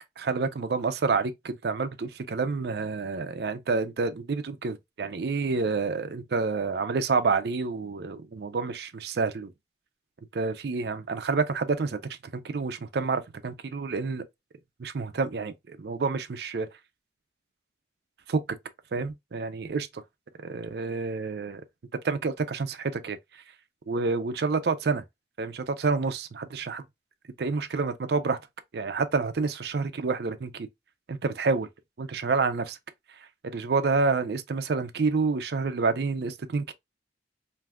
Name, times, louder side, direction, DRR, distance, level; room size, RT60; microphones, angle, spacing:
voice 1, 0.2-9.5 10.3-14.2 14.8-16.7 18.3-18.4 18.9-20.0 20.4-21.6 22.0-23.2 23.9-25.0 25.4-26.8 27.4-28.4 28.7-30.7 31.1-31.7 32.0-32.8 33.5-36.7, right 4 dB, 60° right, 0.4 m, -28 dB
3.4 x 2.6 x 2.3 m
head